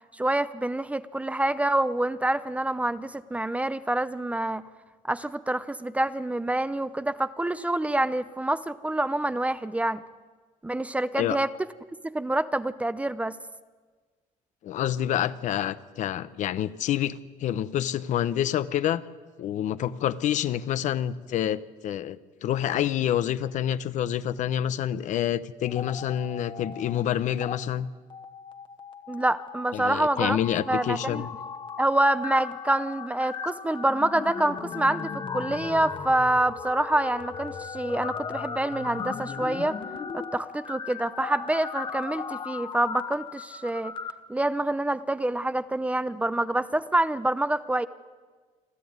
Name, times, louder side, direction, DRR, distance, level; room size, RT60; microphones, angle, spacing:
voice 1, 0.1-4.6 5.0-10.0 10.6-11.5 12.0-13.4 29.1-30.4 30.7-31.3 31.8-39.8 40.1-43.9 44.3-47.9, right 1 dB, 10° right, 14 dB, 0.6 m, -26 dB
voice 2, 14.6-19.0 19.4-27.9 29.7-31.3, left 11 dB, 60° left, 14 dB, 0.8 m, -27 dB
sound 1, 25.6-27.0 27.3-27.6 28.1-44.1, left 6 dB, 35° left, 1.4 m, -37 dB
27.0 x 13.0 x 9.5 m, 1.4 s
cardioid pair, 125°, 14 cm